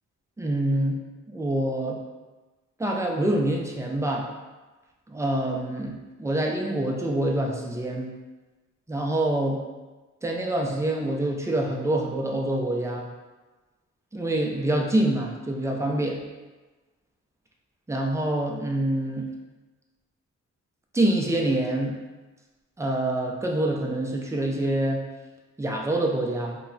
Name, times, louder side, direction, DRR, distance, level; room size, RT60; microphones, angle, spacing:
voice 1, 0.4-1.0 1.3-2.0 2.8-4.3 5.1-8.1 8.9-9.6 10.2-13.1 14.1-16.2 17.9-19.3 20.9-21.9 22.8-25.0 25.6-26.6, right 1 dB, 10° right, 0 dB, 0.3 m, -26 dB
2.2 x 2.1 x 3.7 m, 1.2 s
cardioid pair, 95°, 31 cm